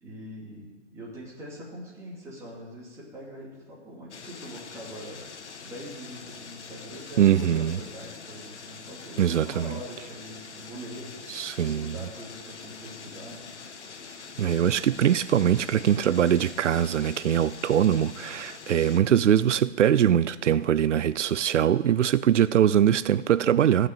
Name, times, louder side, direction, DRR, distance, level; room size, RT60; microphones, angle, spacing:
voice 1, 0.0-5.2 5.6-11.1 11.6-13.5, equal, 10° right, 2.7 m, -43 dB
sound 1, 4.1-19.0, left 5 dB, 75° left, 1.4 m, -44 dB
voice 2, 7.2-7.8 9.2-9.8 11.3-12.0 14.4-23.9, right 10 dB, 85° right, 0.5 m, -22 dB
15.0 x 6.1 x 9.1 m
hypercardioid pair, 155°, 35 cm